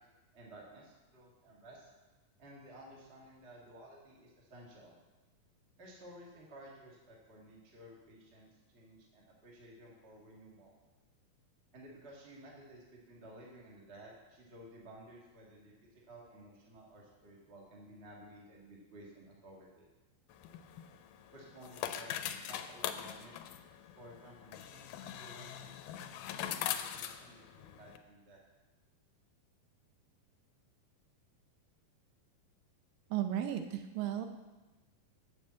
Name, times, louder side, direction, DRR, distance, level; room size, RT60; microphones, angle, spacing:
voice 1, 0.3-1.9 2.4-4.9 5.8-10.7 11.7-19.9 21.3-23.3 23.9-25.7 26.4-28.4, right 1 dB, 30° right, -3 dB, 1.1 m, -55 dB
sound 1, 20.3-28.0, left 10 dB, 80° left, 1.9 m, -42 dB
voice 2, 33.1-34.3, right 11 dB, 80° right, 7 dB, 2.3 m, -34 dB
7.2 x 6.8 x 7.5 m, 1.1 s
omnidirectional pair, 4.1 m